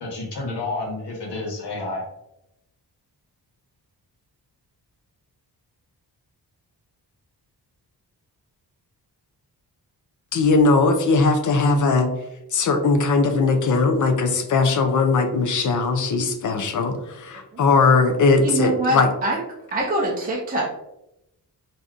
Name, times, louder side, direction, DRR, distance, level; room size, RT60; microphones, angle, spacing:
voice 1, 0.0-2.0, left 2 dB, 80° left, -1 dB, 1.2 m, -30 dB
voice 2, 10.3-12.1 12.5-16.9 17.2-19.1, left 3 dB, 50° left, 6 dB, 0.4 m, -19 dB
voice 3, 18.4-19.4 19.7-20.7, right 1 dB, 25° right, -4 dB, 0.4 m, -24 dB
3.6 x 2.6 x 2.4 m, 0.86 s
wide cardioid pair, 180°, 40 cm